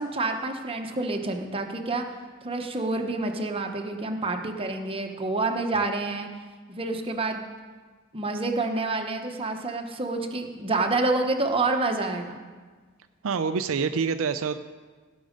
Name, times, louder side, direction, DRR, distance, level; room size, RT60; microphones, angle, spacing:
voice 1, 0.0-2.1 2.4-6.3 6.7-7.4 8.1-12.4, right 3 dB, 25° right, 3 dB, 1.0 m, -28 dB
voice 2, 13.2-14.6, right 5 dB, 75° right, 8 dB, 0.5 m, -26 dB
17.0 x 6.3 x 5.2 m, 1.4 s
head